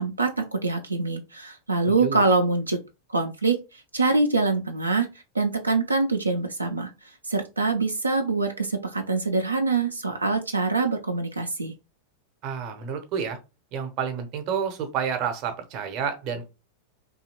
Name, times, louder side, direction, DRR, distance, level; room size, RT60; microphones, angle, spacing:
voice 1, 0.0-2.8 3.1-5.1 5.3-11.7, right 3 dB, 80° right, 0.4 m, -24 dB
voice 2, 12.4-13.4 13.7-16.4, right 7 dB, 40° right, 0.7 m, -29 dB
2.8 x 2.4 x 2.8 m
figure-of-eight pair, 90°, 0 cm